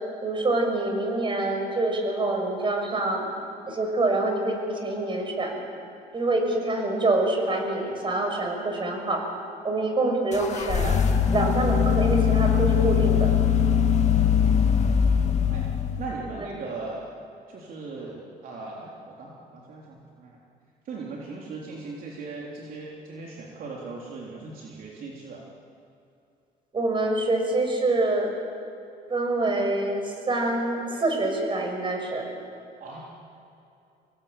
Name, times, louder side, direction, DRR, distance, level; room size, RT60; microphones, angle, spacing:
voice 1, 0.2-3.3 3.7-5.6 6.1-9.2 9.6-13.3 16.4-16.5 26.7-28.3 29.1-32.3, right 2 dB, 30° right, 3 dB, 6.5 m, -26 dB
sound 1, 10.3-16.2, left 7 dB, 45° left, 2.2 m, -21 dB
voice 2, 14.4-14.9 15.5-15.7 16.0-17.1 17.5-20.4 20.9-25.4 32.8-33.1, right 3 dB, 55° right, -3 dB, 3.6 m, -38 dB
26.5 x 20.5 x 8.9 m, 2.6 s
cardioid pair, 110°, 17 cm